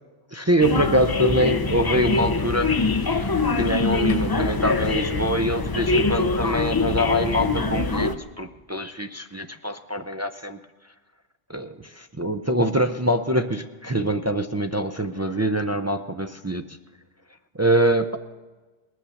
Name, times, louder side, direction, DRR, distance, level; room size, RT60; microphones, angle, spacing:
voice 1, 0.3-3.3 3.6-10.6 11.5-16.7 17.5-18.2, right 1 dB, 25° right, 6 dB, 0.3 m, -24 dB
sound 1, 0.6-8.2, left 3 dB, 30° left, 0.5 m, -24 dB
20.0 x 9.3 x 7.0 m, 1.2 s
omnidirectional pair, 1.0 m